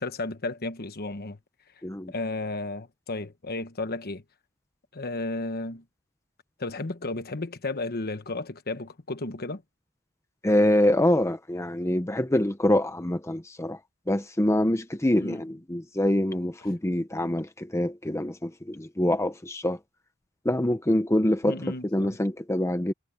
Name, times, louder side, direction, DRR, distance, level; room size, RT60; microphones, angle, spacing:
voice 1, 0.0-1.4 2.1-4.2 4.9-5.8 6.6-9.6 15.2-15.4 21.4-22.2, left 2 dB, 45° left, 1.2 m, -33 dB
voice 2, 10.4-13.8 14.1-19.8 20.4-21.6 21.9-22.9, left 1 dB, 15° left, 0.8 m, -25 dB
head